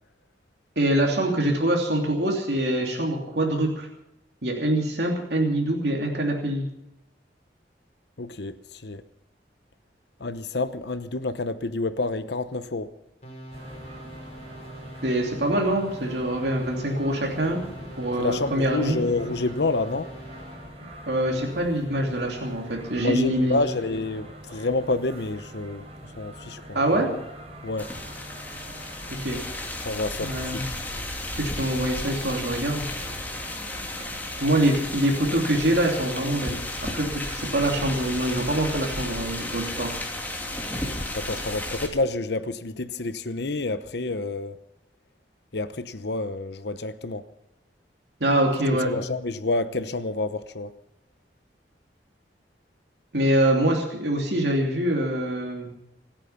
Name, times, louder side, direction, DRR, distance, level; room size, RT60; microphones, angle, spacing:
voice 1, 0.8-3.9 4.4-6.7 15.0-17.6 18.0-19.0 21.1-23.6 26.7-27.1 29.2-29.4 30.2-30.6 31.3-32.9 34.4-36.6 36.9-39.9 48.2-48.9 53.1-55.7, right 1 dB, 65° right, 2.9 m, -24 dB
voice 2, 8.2-9.0 10.2-12.9 18.2-20.1 23.0-25.8 26.2-27.2 27.6-27.9 29.8-30.6 41.1-44.6 45.5-47.2 48.8-50.7, left 2 dB, 70° left, 0.9 m, -28 dB
sound 1, 13.2-20.8, right 1 dB, 40° left, 4.1 m, -43 dB
sound 2, 13.5-29.2, right 1 dB, 35° right, 4.0 m, -43 dB
sound 3, 27.8-41.9, left 1 dB, 10° left, 2.8 m, -33 dB
26.5 x 9.0 x 5.8 m
head